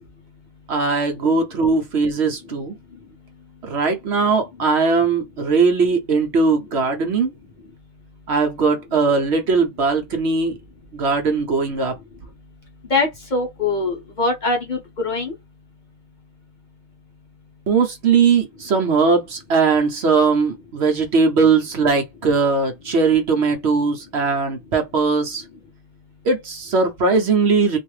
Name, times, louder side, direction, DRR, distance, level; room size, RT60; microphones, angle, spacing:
voice 1, 0.7-2.7 3.6-7.3 8.3-10.6 10.9-11.9 17.7-25.4 26.2-27.8, right 4 dB, 60° right, 1.0 m, -19 dB
voice 2, 12.9-15.3, left 3 dB, 40° left, 0.9 m, -22 dB
3.3 x 2.6 x 3.1 m
omnidirectional pair, 1.3 m